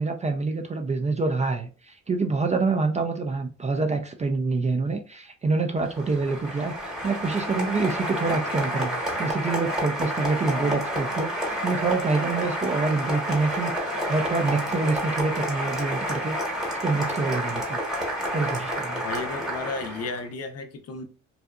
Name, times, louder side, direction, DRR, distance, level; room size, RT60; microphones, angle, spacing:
voice 1, 0.0-16.6 16.8-17.8 18.3-19.0, right 3 dB, 25° right, 0.3 m, -26 dB
Applause, 5.8-20.2, equal, ahead, 1.1 m, -29 dB
voice 2, 19.0-21.0, left 4 dB, 55° left, 0.6 m, -33 dB
2.6 x 2.4 x 2.2 m
cardioid pair, 90°, 30 cm